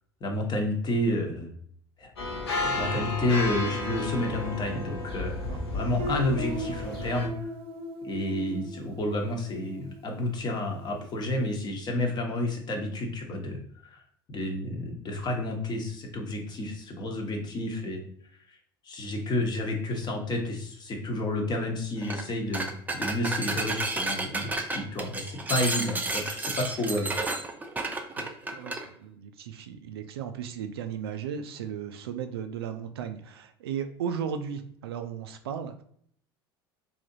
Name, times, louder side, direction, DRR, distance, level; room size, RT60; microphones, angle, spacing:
voice 1, 0.2-1.5 2.0-2.1 2.5-5.4 5.7-7.3 8.0-14.0 14.3-18.0 18.8-27.1, left 1 dB, 35° left, 2 dB, 1.0 m, -30 dB
sound 1, 2.2-7.3, left 2 dB, 80° left, 0.9 m, -33 dB
Guitar, 6.0-10.7, right 1 dB, 50° right, 0.8 m, -39 dB
sound 2, 22.0-22.2 22.5-28.8, right 2 dB, 15° right, 0.5 m, -31 dB
voice 2, 28.1-35.8, right 8 dB, 75° right, 8 dB, 0.4 m, -36 dB
3.3 x 2.7 x 2.7 m, 0.63 s
figure-of-eight pair, 70°, 13 cm